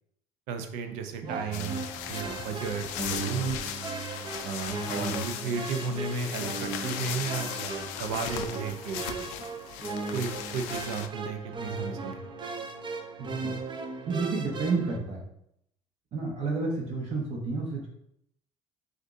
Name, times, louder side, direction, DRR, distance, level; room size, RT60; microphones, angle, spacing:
voice 1, 0.5-3.7 4.4-9.2 10.1-12.3, right 5 dB, 80° right, 7 dB, 0.6 m, -34 dB
sound 1, 1.2-15.0, right 3 dB, 40° right, 0.7 m, -37 dB
sound 2, 1.5-11.1, left 10 dB, 85° left, 0.4 m, -37 dB
voice 2, 4.9-5.2 13.2-13.6 14.1-15.3 16.1-17.9, right 3 dB, 60° right, -2 dB, 1.3 m, -31 dB
6.2 x 2.6 x 2.7 m, 0.75 s
supercardioid pair, 85°, 13 cm